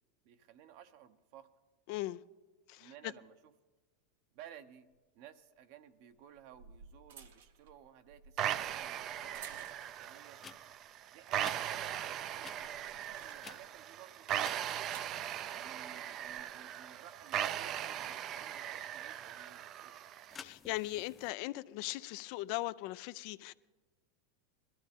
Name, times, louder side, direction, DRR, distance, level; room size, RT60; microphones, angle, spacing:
voice 1, 0.2-1.5 2.8-3.5 4.3-4.9 5.1-10.4 11.1-14.9 15.5-20.0, right 10 dB, 60° right, 0.9 m, -56 dB
voice 2, 1.9-2.2 2.7-2.9 20.4-23.5, left 18 dB, 60° left, 0.4 m, -39 dB
sound 1, 4.9-5.0 6.2-10.1 10.6-10.9 11.2-13.8 14.5-15.2 16.1-16.4, right 6 dB, 85° right, 1.1 m, -57 dB
sound 2, 8.4-20.4, right 10 dB, 40° right, 0.4 m, -39 dB
sound 3, 10.3-10.6 11.4-11.6 12.4-12.6 13.4-13.9 14.4-14.6 20.3-21.3, left 6 dB, 25° left, 0.6 m, -50 dB
20.5 x 13.5 x 3.6 m
hypercardioid pair, 115°, 0 cm